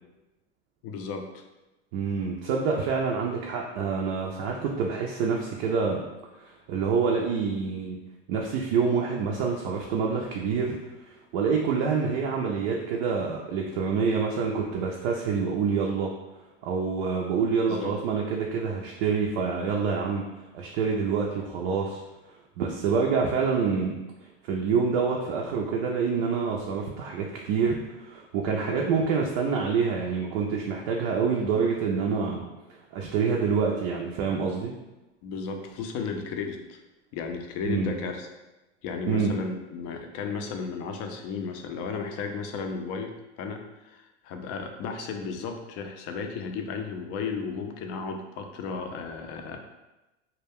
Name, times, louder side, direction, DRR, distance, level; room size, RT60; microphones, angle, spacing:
voice 1, 0.8-1.4 17.7-18.0 28.6-28.9 35.2-36.8 37.1-38.3 38.8-43.1 43.4-49.6, left 5 dB, 45° left, 5 dB, 0.5 m, -34 dB
voice 2, 1.9-6.0 6.4-8.0 8.3-10.8 11.1-16.1 16.6-22.0 22.6-24.0 24.4-32.5 32.9-34.7 37.6-37.9 39.1-39.3, right 5 dB, 50° right, -1 dB, 0.4 m, -27 dB
2.2 x 2.2 x 3.4 m, 1.0 s
hypercardioid pair, 100°, 36 cm